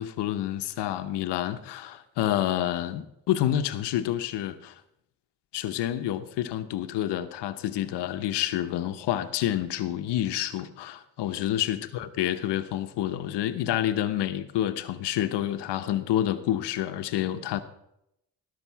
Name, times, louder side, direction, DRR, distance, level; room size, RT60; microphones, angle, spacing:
voice 1, 0.0-4.8 5.5-17.6, left 12 dB, 90° left, 0.9 m, -28 dB
19.0 x 6.7 x 4.6 m
cardioid pair, 70°, 40 cm